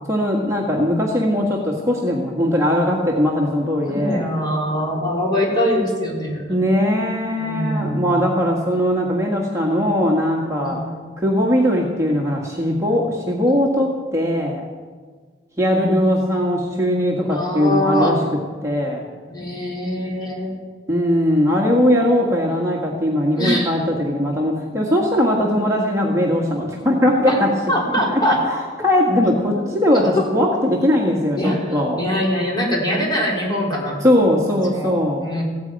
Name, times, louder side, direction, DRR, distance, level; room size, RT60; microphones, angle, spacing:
voice 1, 0.1-4.2 6.5-10.8 11.2-14.6 15.6-18.2 18.6-19.0 20.9-27.5 28.1-28.2 28.8-32.0 34.0-35.2, equal, 15° right, -2 dB, 1.7 m, -19 dB
voice 2, 3.8-6.6 7.4-8.2 10.6-10.8 16.6-16.8 17.3-18.3 19.3-20.6 23.4-23.7 27.3-27.4 27.7-28.4 29.5-29.6 30.1-30.2 31.4-34.0 34.7-35.4, left 1 dB, 25° left, -3 dB, 4.3 m, -23 dB
15.5 x 9.5 x 9.0 m, 1.5 s
head